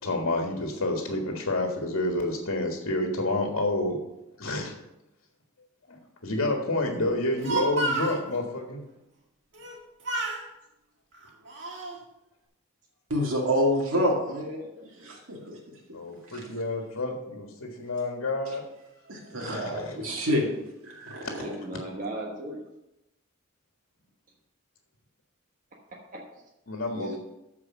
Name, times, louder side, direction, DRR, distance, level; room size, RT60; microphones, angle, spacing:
voice 1, 0.0-4.0 4.4-4.7 5.9-8.8 15.9-18.6 19.3-20.0 21.2-21.3 26.7-27.2, left 2 dB, 75° left, 1 dB, 1.6 m, -29 dB
Speech, 7.2-8.2 9.5-9.8 10.0-10.4 11.1-12.0, right 2 dB, 60° right, 2.0 m, -31 dB
voice 2, 13.1-14.6 15.0-15.6 16.3-16.4 19.1-20.5 20.8-21.5, equal, 85° right, -2 dB, 2.2 m, -27 dB
voice 3, 14.5-15.1 21.4-22.6 26.1-26.2 26.9-27.2, right 1 dB, 40° right, -3 dB, 1.3 m, -37 dB
13.5 x 4.8 x 5.9 m, 0.92 s
head